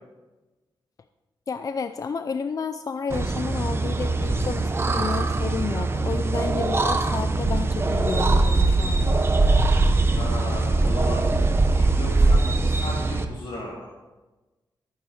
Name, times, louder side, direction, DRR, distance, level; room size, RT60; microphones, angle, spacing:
voice 1, 1.5-9.2, left 5 dB, 45° left, 10 dB, 0.4 m, -31 dB
sound 1, 3.1-13.3, right 3 dB, 30° right, 0.9 m, -22 dB
voice 2, 10.1-11.2 11.7-13.9, left 2 dB, 85° left, -5 dB, 2.6 m, -35 dB
14.0 x 9.3 x 4.9 m, 1.2 s
wide cardioid pair, 135°, 8 cm